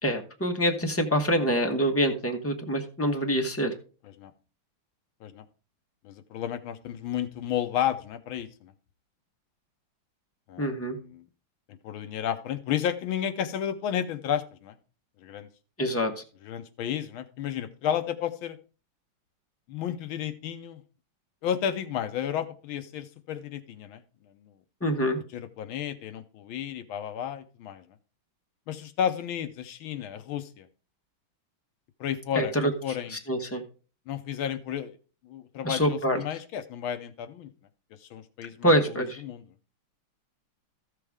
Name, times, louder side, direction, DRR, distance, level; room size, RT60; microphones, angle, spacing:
voice 1, 0.0-3.7 10.6-11.0 15.8-16.1 24.8-25.2 32.3-32.7 33.1-33.6 35.6-36.2 38.6-39.2, equal, 10° left, 3 dB, 0.6 m, -25 dB
voice 2, 6.0-8.7 10.5-11.2 11.7-14.7 15.2-15.5 16.4-18.6 19.7-20.8 21.4-24.0 25.3-27.8 28.7-30.7 32.0-33.1 34.1-35.0 35.2-37.5 38.0-38.7 39.2-39.4, left 9 dB, 75° left, 11 dB, 1.5 m, -32 dB
14.0 x 6.7 x 3.6 m, 0.36 s
omnidirectional pair, 2.3 m